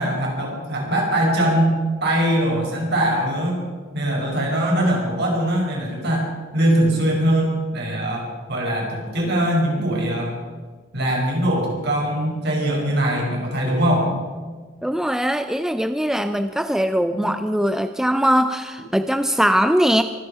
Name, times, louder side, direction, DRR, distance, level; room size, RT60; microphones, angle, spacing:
voice 1, 0.0-3.6 3.9-10.4 10.9-14.1 17.1-17.3, right 1 dB, 55° right, -1 dB, 5.3 m, -22 dB
voice 2, 14.8-20.0, equal, 5° right, 9 dB, 0.5 m, -21 dB
24.0 x 10.0 x 5.6 m, 1.4 s
head